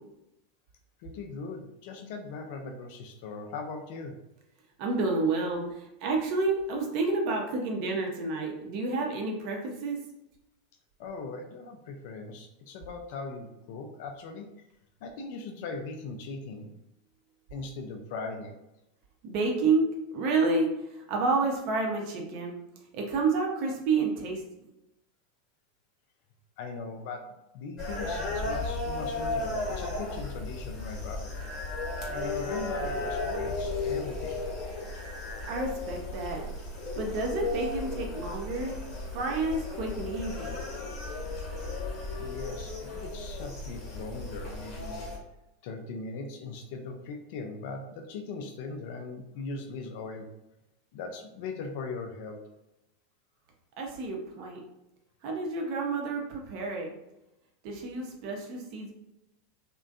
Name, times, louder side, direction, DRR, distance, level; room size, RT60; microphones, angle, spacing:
voice 1, 1.0-4.2 11.0-14.5 15.0-16.7 17.5-18.5 26.6-27.2 27.5-31.4 32.1-34.5 42.2-45.1 45.6-50.3 50.9-52.4, left 4 dB, 60° left, 3 dB, 0.3 m, -39 dB
voice 2, 4.8-10.0 19.2-22.5 22.9-24.4 35.5-36.4 37.0-38.8 39.1-40.6 53.8-54.6 55.2-56.9 57.6-58.9, right 3 dB, 55° right, 1 dB, 0.6 m, -29 dB
sound 1, 27.8-45.2, left 2 dB, 45° left, 1.0 m, -35 dB
2.5 x 2.2 x 2.3 m, 0.89 s
hypercardioid pair, 90°, 0 cm